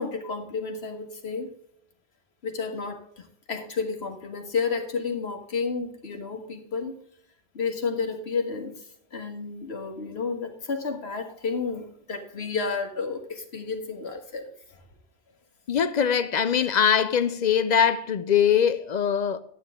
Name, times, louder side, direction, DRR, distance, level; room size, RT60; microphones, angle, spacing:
voice 1, 0.0-1.5 2.4-6.9 7.5-14.8, left 5 dB, 80° left, 1.7 m, -31 dB
voice 2, 15.7-19.4, left 8 dB, 50° left, 0.6 m, -22 dB
11.5 x 9.0 x 3.6 m
omnidirectional pair, 1.1 m